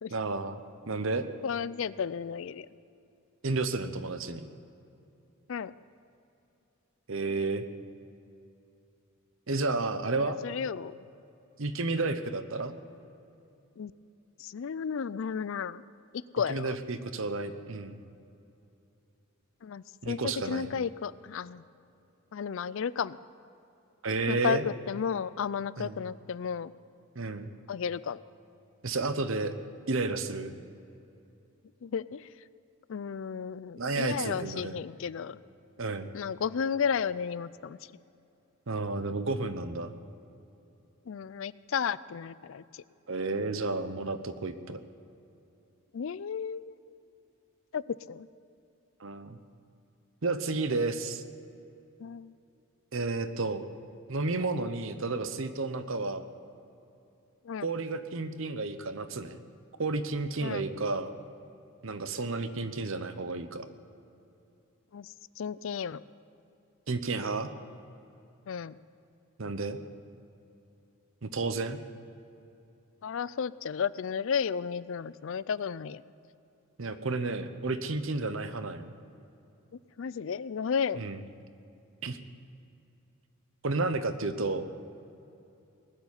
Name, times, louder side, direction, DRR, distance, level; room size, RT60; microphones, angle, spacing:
voice 1, 0.1-0.6 0.9-1.3 3.4-4.4 7.1-7.6 9.5-10.4 11.6-12.7 16.5-18.0 20.0-20.7 24.0-24.6 25.8-26.0 27.1-27.5 28.8-29.5 29.9-30.6 33.8-34.8 35.8-36.1 38.7-39.9 43.1-44.8 49.0-49.4 50.2-51.2 52.9-53.6 54.1-56.3 57.6-59.4 59.8-61.1 61.8-63.7 66.9-67.5 69.4-69.8 71.2-71.8 76.8-78.9 81.0-81.2 82.0-82.2 83.6-84.7, right 3 dB, 60° right, 10 dB, 0.9 m, -31 dB
voice 2, 1.4-2.7 5.5-5.7 10.2-10.9 13.8-13.9 14.4-15.8 16.1-16.8 19.6-21.6 22.3-23.2 24.3-26.7 27.7-28.2 31.8-32.3 32.9-35.4 36.1-37.8 41.1-42.8 45.9-46.8 47.7-48.3 52.0-52.3 57.4-57.7 60.4-60.6 64.9-66.0 68.5-68.8 73.0-76.0 80.0-81.0, left 6 dB, 60° left, 18 dB, 0.4 m, -33 dB
19.5 x 7.3 x 9.6 m, 2.8 s
head